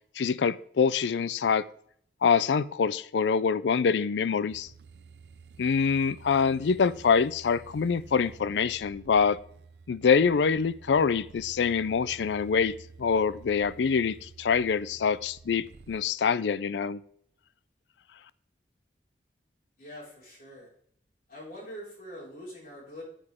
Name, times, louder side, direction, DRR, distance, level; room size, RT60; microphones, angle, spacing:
voice 1, 0.2-1.7 2.2-4.7 5.6-9.4 9.9-17.0, left 6 dB, 80° left, 17 dB, 0.4 m, -25 dB
sound 1, 4.5-16.0, right 4 dB, 70° right, 0.6 m, -51 dB
voice 2, 19.8-20.7 21.3-23.0, equal, 55° left, -4 dB, 4.9 m, -44 dB
9.6 x 8.9 x 3.6 m, 0.64 s
head